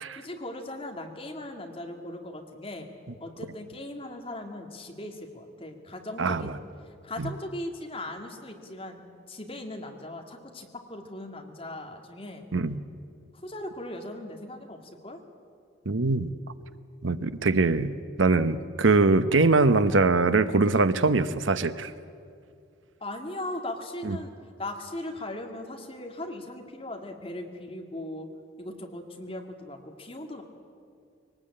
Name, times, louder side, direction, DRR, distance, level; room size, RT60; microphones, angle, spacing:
voice 1, 0.2-2.9 3.2-6.5 6.8-12.5 13.4-15.2 23.0-28.3 28.6-30.4, left 1 dB, 30° left, 3 dB, 2.2 m, -38 dB
voice 2, 6.2-6.5 7.2-7.3 12.5-12.8 15.9-16.3 17.0-21.9 24.0-24.2, right 3 dB, 90° right, 12 dB, 0.9 m, -22 dB
23.0 x 19.0 x 8.8 m, 2.4 s
head